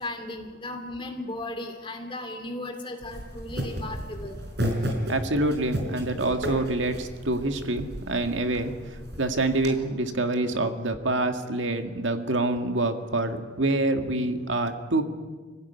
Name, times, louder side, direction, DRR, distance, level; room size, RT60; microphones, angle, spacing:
voice 1, 0.0-4.4, left 2 dB, 25° left, 4 dB, 2.7 m, -36 dB
sound 1, 3.0-9.7, equal, 60° right, 4.9 m, -33 dB
voice 2, 4.8-15.0, right 2 dB, 80° right, 6 dB, 1.9 m, -26 dB
25.0 x 16.0 x 9.5 m, 1.4 s
head